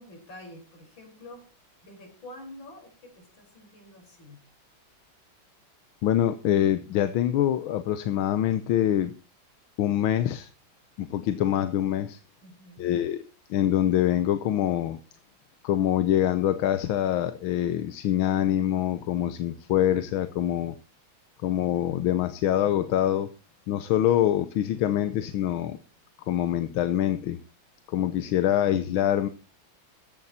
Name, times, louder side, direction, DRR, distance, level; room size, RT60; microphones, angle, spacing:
voice 1, 0.0-1.4 1.8-4.4 12.4-13.0, left 1 dB, 70° left, 3 dB, 5.7 m, -47 dB
voice 2, 6.0-9.1 9.8-10.5 11.0-12.2 12.8-13.2 13.5-15.0 15.6-20.8 21.4-23.3 23.7-25.8 26.3-27.4 27.9-29.3, left 11 dB, 85° left, 12 dB, 1.6 m, -25 dB
15.0 x 11.0 x 4.2 m, 0.34 s
omnidirectional pair, 2.2 m